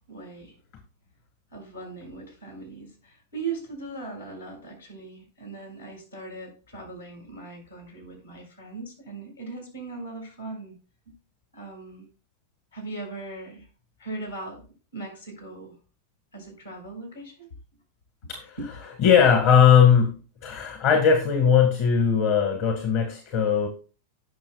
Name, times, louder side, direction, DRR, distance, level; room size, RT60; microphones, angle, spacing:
voice 1, 0.1-0.5 1.5-10.7 11.1-11.2 11.5-12.1 12.7-13.7 14.0-14.7 14.9-15.7 16.3-17.5 18.2-18.3 18.6-19.0, right 3 dB, 75° left, 1 dB, 5.8 m, -39 dB
voice 2, 19.0-23.7, left 7 dB, 45° left, 4 dB, 1.7 m, -19 dB
18.0 x 6.1 x 2.4 m, 0.37 s
figure-of-eight pair, 90°, 0 cm